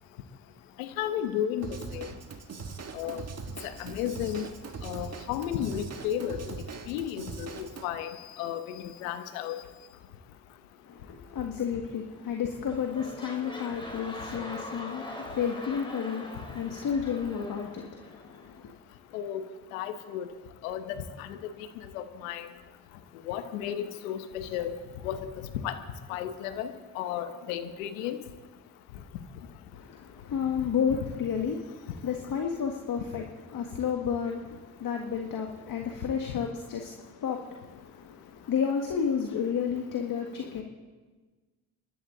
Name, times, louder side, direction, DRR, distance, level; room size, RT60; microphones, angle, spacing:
voice 1, 0.8-2.1 2.9-3.2 3.6-4.5 4.8-6.6 6.9-8.1 8.4-9.6 19.1-19.4 19.7-20.3 20.6-20.8 21.2-21.4 21.9-22.5 23.3-24.7 25.0-25.3 25.6-25.8 26.1-28.2, left 10 dB, 90° left, 9 dB, 1.0 m, -33 dB
Drum kit / Drum, 1.6-7.8, right 5 dB, 40° right, 1.6 m, -41 dB
voice 2, 10.9-18.7 29.7-33.2 33.5-40.6, left 7 dB, 55° left, 2 dB, 1.8 m, -32 dB
sound 1, 12.1-12.4 12.6-18.5 19.1-19.2, left 1 dB, 10° left, 3.7 m, -43 dB
27.5 x 11.5 x 3.9 m, 1.3 s
hypercardioid pair, 55°, 40 cm